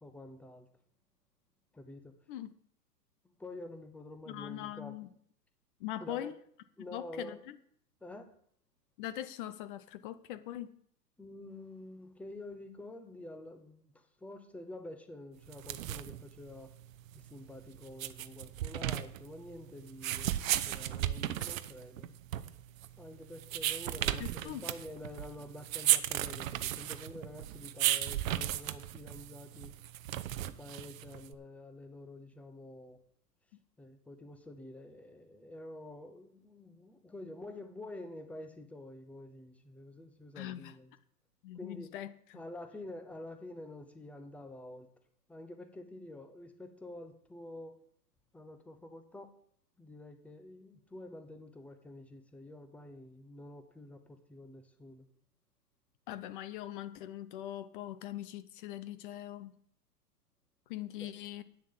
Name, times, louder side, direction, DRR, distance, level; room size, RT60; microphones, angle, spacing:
voice 1, 0.0-0.7 1.7-2.1 3.2-4.9 6.0-6.3 6.8-7.4 8.0-8.3 11.2-16.7 17.1-22.1 23.0-29.7 30.4-33.0 33.8-40.9 41.5-41.9 42.3-44.9 45.3-47.7 48.3-49.3 49.8-55.1 61.0-61.1, left 1 dB, 5° left, 0.9 m, -48 dB
voice 2, 4.3-5.1 5.8-6.3 6.9-7.6 9.0-10.8 24.2-24.6 40.4-40.7 41.4-42.1 56.1-59.6 60.7-61.4, left 13 dB, 35° left, 0.6 m, -41 dB
sound 1, 15.5-31.3, right 13 dB, 55° right, 0.8 m, -35 dB
9.0 x 7.2 x 7.3 m
hypercardioid pair, 120°, 49 cm